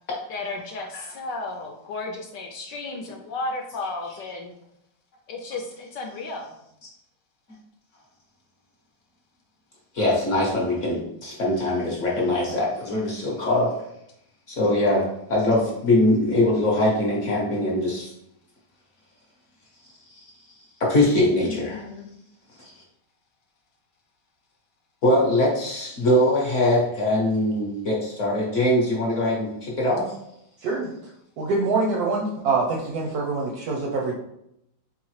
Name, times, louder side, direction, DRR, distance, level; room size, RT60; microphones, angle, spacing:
voice 1, 0.3-4.5 5.3-6.6 21.4-22.1, left 3 dB, 70° left, 2 dB, 1.1 m, -34 dB
voice 2, 9.9-13.7 14.5-18.1 20.1-20.2 20.8-21.8 22.6-22.7 25.0-30.1, left 1 dB, 50° left, -3 dB, 1.0 m, -22 dB
voice 3, 30.6-30.9 31.4-34.1, right 3 dB, 70° right, -1 dB, 0.9 m, -25 dB
4.0 x 3.7 x 3.1 m, 0.78 s
omnidirectional pair, 2.2 m